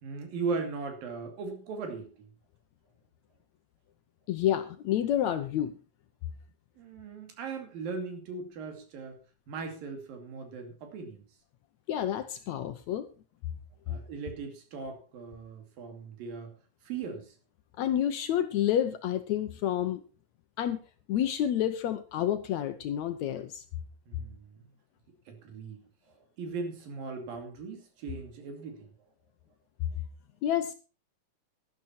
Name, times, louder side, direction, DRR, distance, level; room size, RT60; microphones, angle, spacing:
voice 1, 0.0-2.3 6.8-9.2 9.5-11.2 13.9-16.5 16.8-17.4 24.1-24.7 25.3-25.8 26.1-28.9, right 4 dB, 85° right, 6 dB, 4.2 m, -38 dB
voice 2, 4.3-5.8 11.9-13.1 17.8-20.0 20.6-20.8 21.1-23.6 30.4-30.7, left 11 dB, 70° left, 10 dB, 1.8 m, -29 dB
12.0 x 12.0 x 4.3 m, 0.34 s
omnidirectional pair, 3.9 m